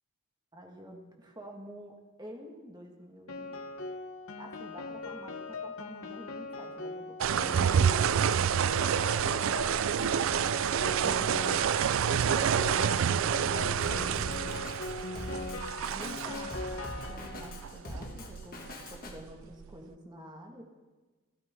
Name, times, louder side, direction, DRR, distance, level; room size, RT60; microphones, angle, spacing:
voice 1, 0.5-3.6 4.4-8.3 12.8-14.2 15.9-16.5 16.8-18.6 18.9-20.6, equal, 20° right, 1 dB, 1.7 m, -48 dB
Piano, 3.3-17.7, left 3 dB, 75° left, 1.0 m, -40 dB
sound 1, 7.2-19.8, right 8 dB, 65° right, 0.4 m, -29 dB
Drum kit, 13.8-19.1, left 1 dB, 40° left, 1.8 m, -43 dB
28.5 x 9.6 x 3.7 m, 1.3 s
head